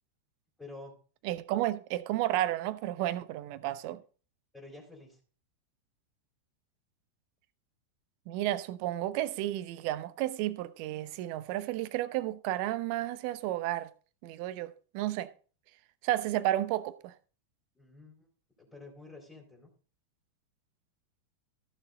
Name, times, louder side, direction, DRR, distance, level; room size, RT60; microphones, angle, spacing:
voice 1, 0.6-0.9 4.5-5.2 17.7-18.3 18.6-19.7, left 2 dB, 10° left, 4.2 m, -49 dB
voice 2, 1.2-4.0 8.3-13.9 14.2-15.3 16.0-17.1, right 14 dB, 45° right, 0.8 m, -32 dB
14.5 x 7.0 x 3.8 m
figure-of-eight pair, 90°, 0 cm